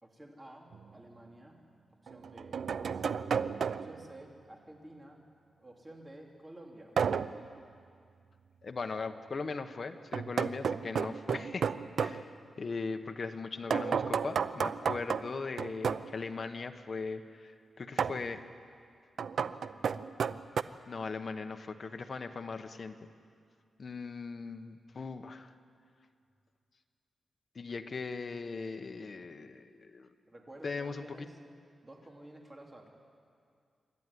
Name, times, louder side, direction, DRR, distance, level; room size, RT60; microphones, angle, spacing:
voice 1, 0.0-1.6 2.0-3.2 3.7-5.2 5.6-6.9 30.3-31.4 31.8-32.9, right 1 dB, 20° right, 0 dB, 3.1 m, -52 dB
sound 1, 0.7-0.8 2.1-4.1 7.0-7.4 10.1-12.2 13.7-16.1 18.0-18.3 19.2-20.6, right 6 dB, 70° right, 0.5 m, -32 dB
voice 2, 8.6-11.7 12.0-17.5 17.8-18.4 20.9-22.9 23.8-25.5 27.5-30.1 30.6-31.3, left 4 dB, 45° left, 7 dB, 1.1 m, -39 dB
26.5 x 12.5 x 9.8 m, 2.3 s
wide cardioid pair, 125°, 0 cm